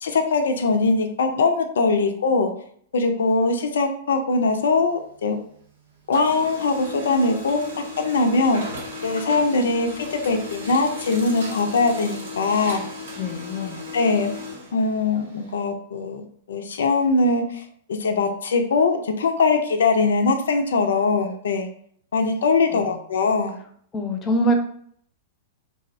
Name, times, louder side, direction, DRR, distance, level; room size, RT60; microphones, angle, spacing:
voice 1, 0.0-2.5 2.9-5.4 6.1-7.6 8.0-8.6 9.0-12.8 13.6-13.7 13.9-14.3 14.7-16.2 16.5-17.6 17.9-21.7 22.1-23.6, left 3 dB, 80° left, 6 dB, 0.3 m, -21 dB
Printer, 4.4-5.7 6.0-15.5, left 3 dB, 85° right, 0.9 m, -36 dB
voice 2, 13.2-13.8 22.7-22.8 23.9-24.5, right 1 dB, 25° left, 4 dB, 0.5 m, -24 dB
2.5 x 2.0 x 2.5 m, 0.62 s
hypercardioid pair, 120°, 0 cm